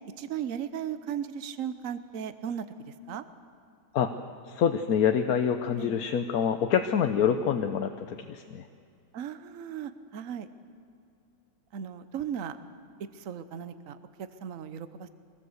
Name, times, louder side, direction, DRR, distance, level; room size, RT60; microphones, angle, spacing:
voice 1, 0.2-2.7 3.1-3.2 5.8-6.0 9.1-10.5 11.7-12.6 13.1-15.1, right 8 dB, 60° right, 12 dB, 1.3 m, -36 dB
voice 2, 4.4-8.6, left 8 dB, 75° left, 7 dB, 1.3 m, -26 dB
24.0 x 18.5 x 8.0 m, 2.4 s
omnidirectional pair, 1.6 m